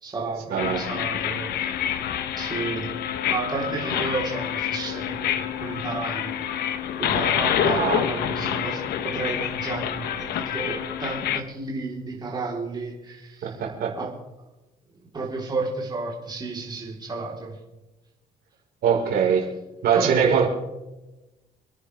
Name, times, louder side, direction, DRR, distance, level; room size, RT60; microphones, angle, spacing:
voice 1, 0.0-1.5 2.4-2.9 3.3-5.3 5.6-6.5 7.0-13.5 13.9-14.1 15.1-17.6 19.9-20.1, right 3 dB, 25° right, -3 dB, 4.0 m, -32 dB
sound 1, 0.6-11.4, left 10 dB, 70° left, 1.2 m, -27 dB
voice 2, 7.6-8.2 13.4-13.9 18.8-19.4 19.8-20.5, right 7 dB, 65° right, -1 dB, 4.9 m, -22 dB
28.5 x 10.5 x 3.5 m, 1.0 s
cardioid pair, 110°, 17 cm